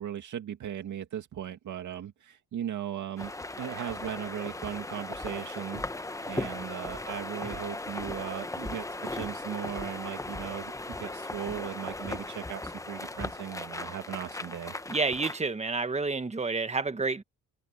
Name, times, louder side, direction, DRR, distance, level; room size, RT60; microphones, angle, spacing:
voice 1, 0.0-3.3 3.6-5.8 6.3-14.7, right 10 dB, 70° right, 2.3 m, -37 dB
sound 1, 3.2-15.4, left 2 dB, 10° left, 0.9 m, -37 dB
voice 2, 14.9-17.2, right 3 dB, 20° right, 1.5 m, -29 dB
cardioid pair, 90°, 31 cm